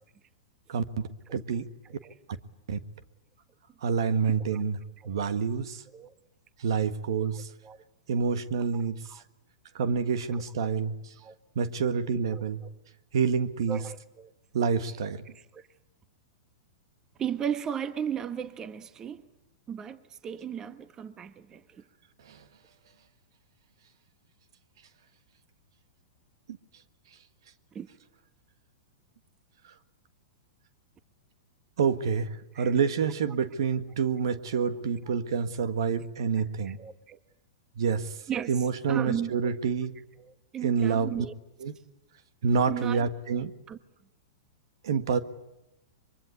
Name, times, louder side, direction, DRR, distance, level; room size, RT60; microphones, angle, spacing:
voice 1, 0.7-1.7 2.7-2.8 3.8-4.8 5.0-5.8 6.6-7.5 8.1-9.2 9.7-11.1 11.5-12.6 13.1-13.8 14.5-15.2 22.2-22.4 29.6-29.7 31.8-36.8 37.8-38.2 38.5-40.0 40.6-41.1 41.6-41.8 42.4-43.5 44.8-45.2, right 6 dB, 75° right, 1.6 m, -28 dB
voice 2, 7.3-7.8 8.7-8.8 9.1-9.2 10.3-10.7 11.2-11.3 13.7-14.3 15.5-15.7 17.2-19.3 19.7-21.8 27.7-27.9 32.5-32.7 36.6-37.2 38.3-38.5 38.9-39.3 40.2-41.3 42.7-43.0 43.7-43.8, right 8 dB, 25° right, 1.2 m, -35 dB
24.0 x 23.5 x 9.7 m
hypercardioid pair, 130°, 3 cm